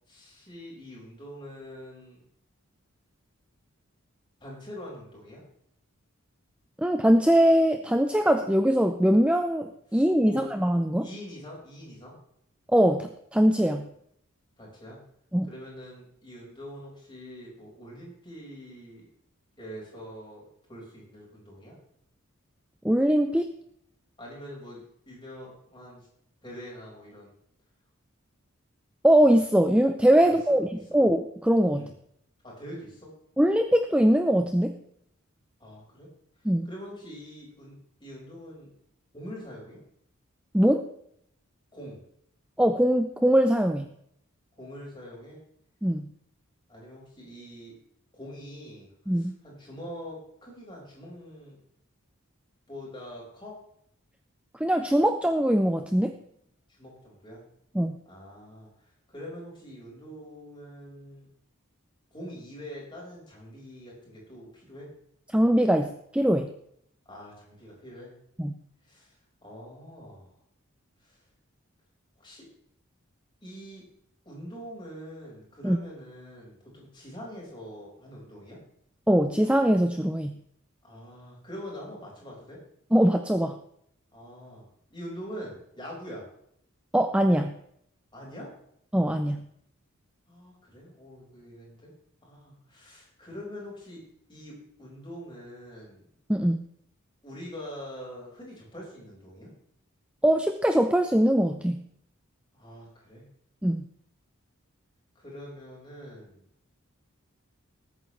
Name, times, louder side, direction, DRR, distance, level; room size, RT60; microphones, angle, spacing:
voice 1, 0.1-2.2 4.4-5.4 9.9-10.5 11.0-12.2 14.6-15.0 15.5-19.0 19.6-21.8 24.2-26.1 26.4-27.3 30.2-30.4 31.7-31.9 32.4-33.1 35.6-36.1 36.4-38.7 39.1-39.8 41.7-42.0 44.6-45.4 46.7-47.8 48.1-51.6 52.7-53.6 56.8-57.4 58.1-58.7 59.1-61.3 62.1-64.9 67.1-68.1 68.8-69.1 69.4-70.4 71.0-71.2 72.2-72.5 73.4-73.8 74.3-78.6 80.8-82.6 84.1-84.7 84.9-86.3 88.1-88.5 90.3-91.9 92.2-94.0 94.3-94.5 94.8-96.0 97.2-99.5 102.5-103.2 105.2-106.5, equal, 20° left, -4 dB, 5.5 m, -44 dB
voice 2, 6.8-11.1 12.7-13.9 15.3-15.5 22.8-23.5 29.0-31.9 33.4-34.8 36.4-36.7 40.5-40.9 42.6-43.9 45.8-46.1 49.1-49.4 54.6-56.1 57.7-58.0 65.3-66.5 68.4-68.6 75.6-75.8 79.1-80.4 82.9-83.6 86.9-87.6 88.9-89.5 96.3-96.6 100.2-101.8 103.6-103.9, equal, 5° right, 7 dB, 0.5 m, -22 dB
19.5 x 9.1 x 3.4 m, 0.71 s
head